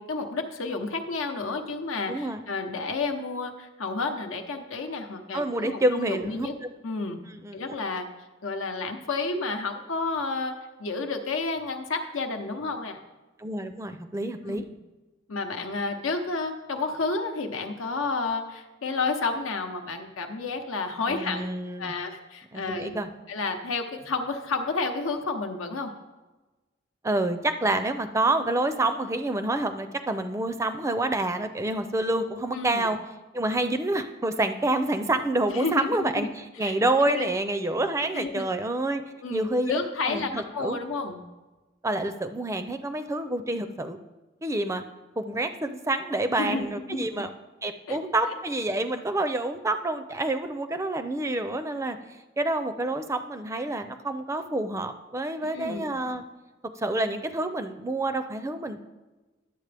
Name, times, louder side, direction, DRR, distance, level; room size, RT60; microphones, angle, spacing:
voice 1, 0.0-6.5 6.8-7.2 7.5-8.1 8.4-10.5 10.8-13.0 14.4-14.6 15.3-21.5 21.8-23.0 23.3-25.9 32.5-32.9 35.5-36.3 36.6-37.3 38.1-38.5 39.2-41.2 46.3-47.1 47.9-48.0 55.5-55.9, left 3 dB, 90° left, 5 dB, 0.9 m, -31 dB
voice 2, 2.1-2.4 5.3-6.5 7.4-7.6 13.4-14.6 21.1-21.9 22.5-23.1 27.0-33.0 33.3-39.0 39.3-39.7 40.1-40.8 41.8-44.0 44.4-44.8 45.2-47.3 47.6-52.0 52.4-56.2 56.8-58.8, right 2 dB, 15° right, 9 dB, 0.4 m, -28 dB
11.5 x 7.8 x 3.4 m, 1.2 s
head